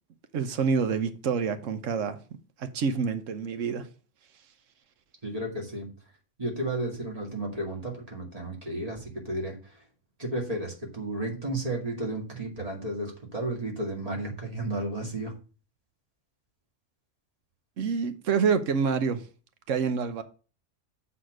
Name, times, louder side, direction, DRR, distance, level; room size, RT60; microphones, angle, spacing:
voice 1, 0.3-2.2 2.6-3.9 17.8-19.3 19.7-20.2, right 6 dB, 85° right, 1.2 m, -27 dB
voice 2, 5.2-5.9 6.4-9.8 10.2-15.3, right 1 dB, 30° right, 2.5 m, -33 dB
7.6 x 4.2 x 6.4 m
omnidirectional pair, 1.3 m